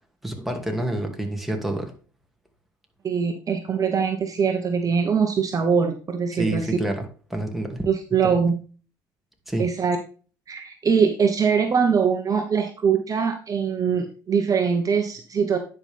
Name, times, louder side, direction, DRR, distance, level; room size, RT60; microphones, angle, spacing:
voice 1, 0.2-1.9 6.3-7.9 8.2-8.4 9.5-9.7, right 1 dB, ahead, 3 dB, 2.3 m, -28 dB
voice 2, 3.0-6.7 7.9-8.6 9.6-10.0 10.5-15.6, right 6 dB, 35° right, 6 dB, 1.2 m, -22 dB
9.8 x 5.5 x 3.5 m, 0.38 s
hypercardioid pair, 70°, 10 cm